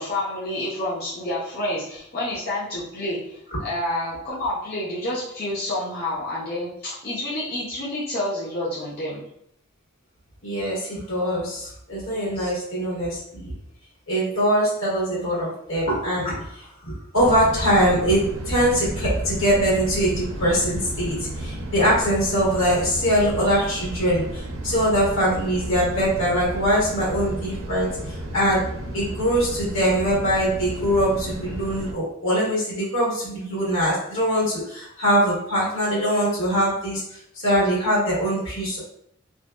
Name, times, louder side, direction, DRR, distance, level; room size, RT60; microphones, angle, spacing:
voice 1, 0.0-9.2 12.3-12.5, left 1 dB, 45° left, -8 dB, 0.5 m, -29 dB
voice 2, 10.4-13.5 14.1-38.8, equal, 85° left, -6 dB, 1.5 m, -23 dB
sound 1, 17.1-31.9, right 1 dB, 85° right, 0.4 m, -32 dB
2.6 x 2.1 x 2.2 m, 0.71 s
head